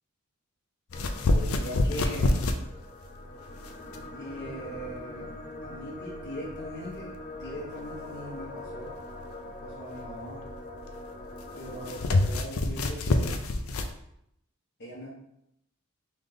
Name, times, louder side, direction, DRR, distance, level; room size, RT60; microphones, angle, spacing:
sound 1, 0.9-13.9, left 2 dB, 90° left, 0.5 m, -29 dB
sound 2, 0.9-12.1, left 2 dB, 35° left, 0.6 m, -43 dB
voice 1, 1.3-2.5 4.1-5.3 5.6-9.0 9.6-10.4 11.5-13.4 14.8-15.1, equal, 55° left, -5 dB, 1.4 m, -40 dB
3.6 x 3.3 x 3.9 m, 0.77 s
head